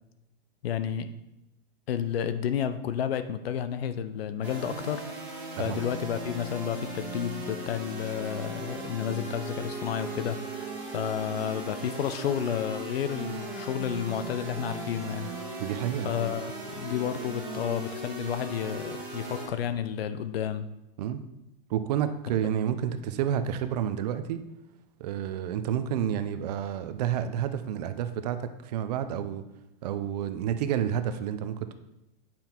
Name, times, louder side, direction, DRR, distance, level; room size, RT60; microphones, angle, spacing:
voice 1, 0.6-1.1 1.9-5.0 5.6-15.3 16.0-20.7, left 9 dB, 90° left, 11 dB, 0.8 m, -31 dB
sound 1, 4.4-19.5, right 2 dB, 5° right, 1.6 m, -38 dB
voice 2, 15.6-16.1 21.0-21.2 21.7-24.4 25.0-29.4 29.8-31.7, right 9 dB, 45° right, 10 dB, 0.6 m, -30 dB
8.9 x 5.8 x 4.4 m, 0.89 s
supercardioid pair, 170°, 29 cm